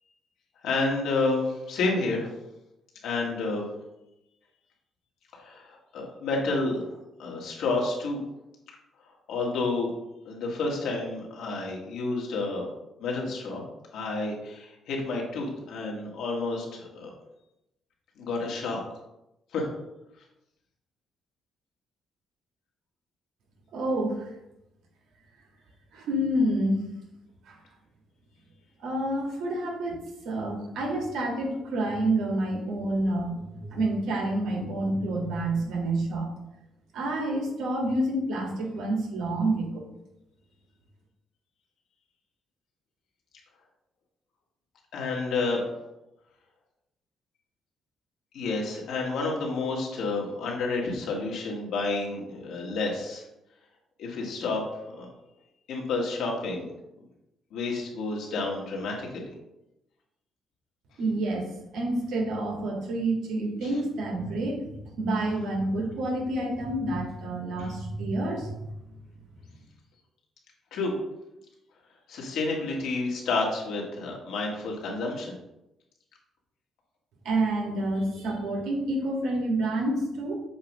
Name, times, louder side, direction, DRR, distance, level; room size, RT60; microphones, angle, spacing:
voice 1, 0.6-2.3 3.0-3.6 5.3-8.2 9.3-9.9 10.3-12.7 13.0-13.6 13.9-17.1 18.2-18.8 19.5-19.7 44.9-45.6 48.3-53.2 54.0-55.1 55.7-56.7 57.5-59.3 63.6-63.7 67.6-67.7 70.7-70.9 72.1-75.3, left 3 dB, 80° left, -1 dB, 2.0 m, -30 dB
voice 2, 23.7-24.3 25.9-26.8 27.5-27.6 28.8-36.4 36.9-39.9 61.0-68.6 77.2-80.4, right 1 dB, 80° right, 0 dB, 1.8 m, -28 dB
7.5 x 3.0 x 6.0 m, 0.90 s
cardioid pair, 90°, 0 cm